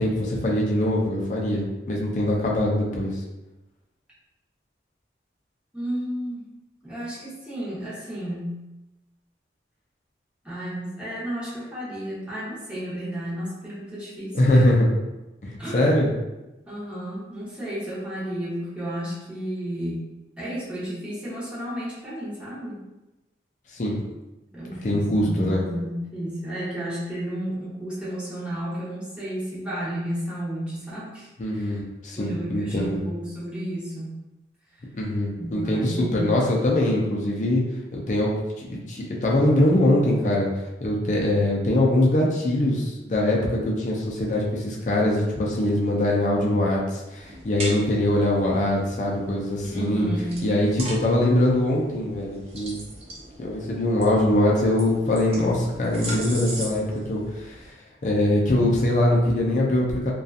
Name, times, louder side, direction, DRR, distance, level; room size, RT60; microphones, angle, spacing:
voice 1, 0.0-3.1 14.3-14.9 15.4-16.1 23.7-24.0 24.8-25.6 31.4-33.0 34.9-37.6 37.9-40.5 40.8-50.1 50.4-52.8 53.4-56.8 57.1-57.7 58.0-60.1, left 1 dB, 45° left, -3 dB, 0.4 m, -22 dB
voice 2, 5.7-6.4 6.8-8.6 10.4-14.8 15.6-15.9 16.6-20.0 20.4-22.8 24.5-31.8 32.2-34.1 35.4-36.4 49.6-50.6, equal, 5° right, -9 dB, 0.8 m, -32 dB
sound 1, 47.1-57.7, right 1 dB, 35° right, 0.5 m, -40 dB
2.7 x 2.3 x 2.4 m, 1.0 s
head